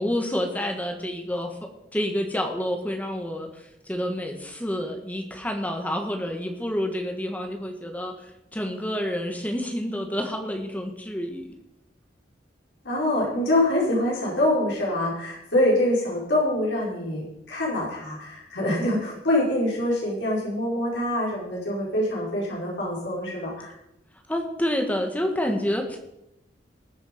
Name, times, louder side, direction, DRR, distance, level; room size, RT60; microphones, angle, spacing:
voice 1, 0.0-11.5 24.3-26.0, equal, 10° left, 4 dB, 1.6 m, -29 dB
voice 2, 12.8-23.7, left 1 dB, 80° left, -5 dB, 4.6 m, -25 dB
20.0 x 7.0 x 5.2 m, 0.85 s
head